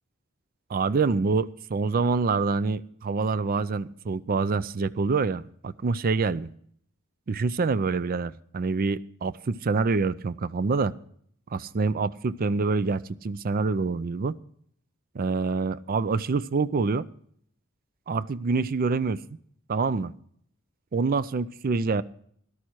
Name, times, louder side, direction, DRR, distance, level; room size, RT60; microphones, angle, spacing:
voice 1, 0.7-6.5 7.3-10.9 11.5-14.3 15.1-17.1 18.1-19.2 19.7-20.1 20.9-22.0, right 4 dB, 45° right, 17 dB, 0.4 m, -26 dB
13.0 x 12.5 x 4.6 m, 0.63 s
head